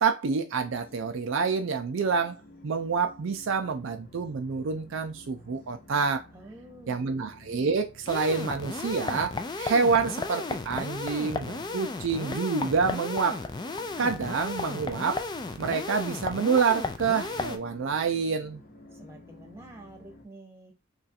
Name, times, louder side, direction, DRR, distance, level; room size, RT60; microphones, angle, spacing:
voice 1, 0.0-6.3 6.9-13.4 14.0-15.3 15.6-18.6, right 5 dB, 65° right, 0.4 m, -27 dB
sound 1, 0.5-20.2, left 1 dB, 45° left, 0.9 m, -52 dB
voice 2, 6.3-7.0 18.9-20.8, right 1 dB, 10° right, 0.9 m, -48 dB
sound 2, 8.1-17.6, left 3 dB, 20° left, 0.3 m, -34 dB
3.0 x 2.4 x 4.2 m
head